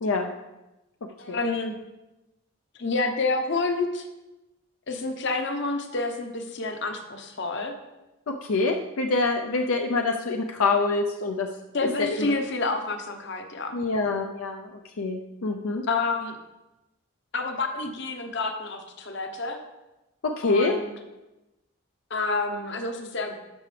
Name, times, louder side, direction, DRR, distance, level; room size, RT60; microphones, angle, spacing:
voice 1, 1.2-1.7 2.8-4.1 4.9-7.8 11.7-13.7 15.9-16.4 17.3-19.6 20.4-20.9 22.1-23.4, left 3 dB, 55° left, 5 dB, 0.9 m, -28 dB
voice 2, 8.3-11.5 12.0-12.3 13.7-14.7 15.0-15.8 20.2-20.7, left 3 dB, 75° left, 3 dB, 0.6 m, -25 dB
12.5 x 6.0 x 3.3 m, 1.0 s
head